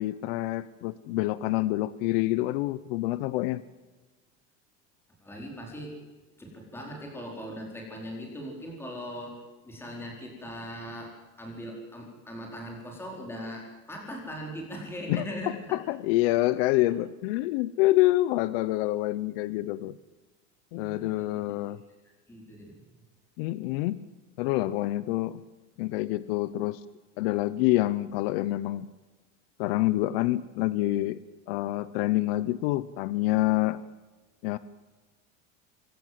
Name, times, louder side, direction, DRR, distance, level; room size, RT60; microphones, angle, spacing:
voice 1, 0.0-3.6 15.1-15.2 15.7-20.0 20.7-21.8 23.4-24.0 24.4-25.4 25.8-26.8 27.2-28.9 29.6-31.2 31.5-33.8 34.4-34.6, left 17 dB, 65° left, 16 dB, 0.9 m, -27 dB
voice 2, 5.2-5.9 6.4-15.8 20.7-21.4 22.3-22.7, equal, 5° left, 0 dB, 4.4 m, -40 dB
25.0 x 16.0 x 7.7 m, 1.2 s
supercardioid pair, 155°, 31 cm